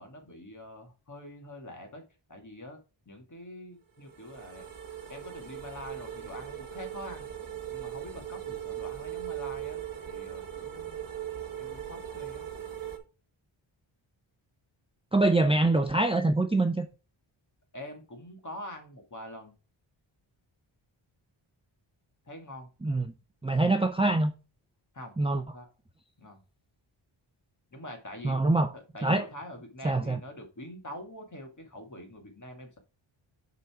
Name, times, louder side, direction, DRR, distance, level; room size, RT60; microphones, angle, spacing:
voice 1, 0.0-2.0 2.3-2.8 3.1-4.7 5.1-7.3 7.7-11.0 11.6-12.5 17.7-19.5 22.2-22.7 24.9-25.7 26.2-26.4 27.7-28.4 28.7-32.8, left 1 dB, 35° left, 2.1 m, -45 dB
sound 1, 4.0-13.0, right 10 dB, 45° right, 1.4 m, -39 dB
voice 2, 15.1-16.9 22.8-23.0 23.4-24.3 25.2-25.4 28.2-28.7 29.0-29.3 29.8-30.2, right 2 dB, 10° right, 0.5 m, -24 dB
6.8 x 4.1 x 4.8 m
wide cardioid pair, 125°, 50 cm